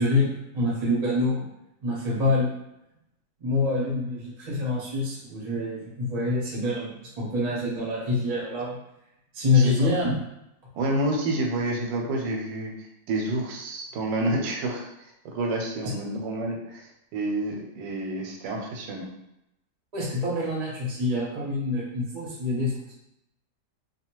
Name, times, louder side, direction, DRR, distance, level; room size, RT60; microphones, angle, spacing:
voice 1, 0.0-1.4 1.8-2.5 3.4-8.8 9.3-10.1 15.8-15.9 19.9-22.9, left 2 dB, 35° right, -5 dB, 0.7 m, -26 dB
voice 2, 9.5-9.9 10.8-19.1, right 1 dB, 85° right, 1 dB, 1.3 m, -29 dB
2.7 x 2.3 x 2.9 m, 0.85 s
omnidirectional pair, 1.9 m